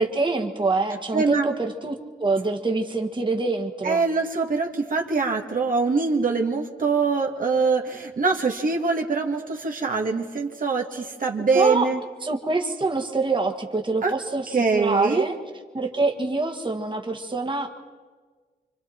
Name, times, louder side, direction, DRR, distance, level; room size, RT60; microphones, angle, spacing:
voice 1, 0.0-4.0 11.4-11.9 12.2-15.4 15.7-17.7, right 3 dB, 30° right, 3 dB, 1.8 m, -25 dB
voice 2, 1.1-1.5 3.8-12.0 14.0-14.1 14.5-15.3, right 4 dB, 55° right, 1 dB, 1.7 m, -23 dB
27.5 x 24.5 x 4.4 m, 1.5 s
cardioid pair, 70°, 17 cm